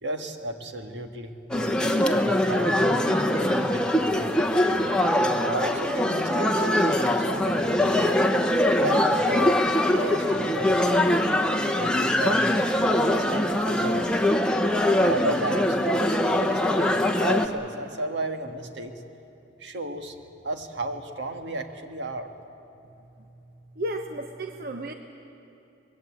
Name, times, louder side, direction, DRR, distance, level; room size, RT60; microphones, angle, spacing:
voice 1, 0.0-2.9 3.2-4.8 5.4-8.1 8.6-9.6 9.9-11.2 11.7-12.5 13.1-14.3 15.0-16.9 17.2-18.9 19.6-20.2 20.4-22.3, right 1 dB, 75° right, 5 dB, 1.7 m, -34 dB
sound 1, 1.5-17.5, left 1 dB, 5° left, 1.0 m, -23 dB
voice 2, 23.8-24.9, right 1 dB, 55° right, 5 dB, 0.9 m, -33 dB
23.5 x 21.0 x 8.6 m, 2.8 s
head